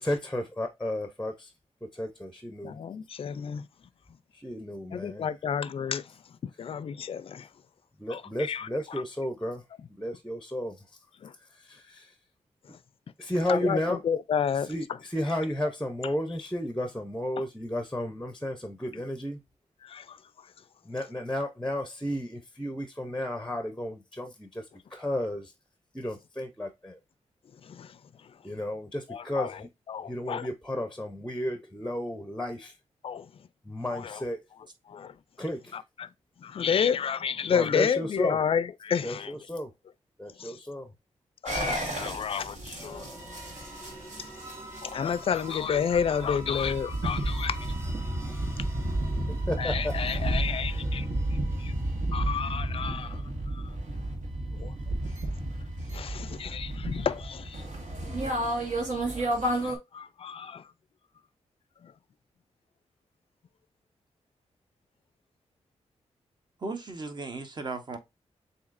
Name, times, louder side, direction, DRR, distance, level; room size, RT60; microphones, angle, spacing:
voice 1, 0.0-1.5 1.9-2.8 4.3-5.3 8.0-9.6 10.0-10.8 11.5-12.1 13.2-14.0 14.7-19.4 20.9-24.6 24.9-25.5 25.9-27.0 28.4-29.7 30.1-32.7 33.6-34.4 35.4-35.8 37.5-38.4 39.0-39.7 40.2-40.9 49.5-49.9, left 1 dB, 5° left, 0.6 m, -33 dB
voice 2, 2.6-3.7 4.9-6.1 6.4-7.5 8.1-9.0 11.2-11.3 13.5-14.7 17.4-17.5 19.8-20.5 27.6-28.3 29.1-30.5 33.0-33.3 33.9-34.2 34.9-35.2 35.7-36.1 36.4-39.3 40.4-40.6 41.4-43.1 44.8-47.7 49.6-51.1 51.6-51.7 52.1-53.6 54.6-54.7 55.9-57.6 59.2-60.7 61.8-61.9, left 7 dB, 50° left, 0.4 m, -31 dB
sound 1, 41.5-59.8, right 1 dB, 80° right, 1.7 m, -32 dB
sound 2, 42.7-52.6, right 1 dB, 25° right, 1.8 m, -46 dB
voice 3, 66.6-68.0, right 3 dB, 40° right, 1.0 m, -36 dB
7.0 x 2.8 x 2.5 m
wide cardioid pair, 105°, 12 cm